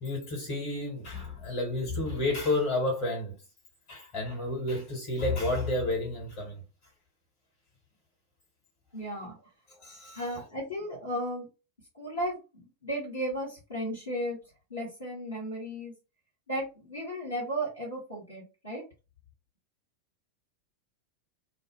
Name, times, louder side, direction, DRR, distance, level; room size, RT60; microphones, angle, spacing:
voice 1, 0.0-3.4 3.9-6.6 9.8-10.2, left 2 dB, 45° left, 1.3 m, -31 dB
voice 2, 8.9-9.4 10.1-11.5 11.9-14.4 14.7-15.9 16.5-18.8, equal, 75° left, 1.2 m, -35 dB
2.5 x 2.0 x 3.1 m
figure-of-eight pair, 90°, 0 cm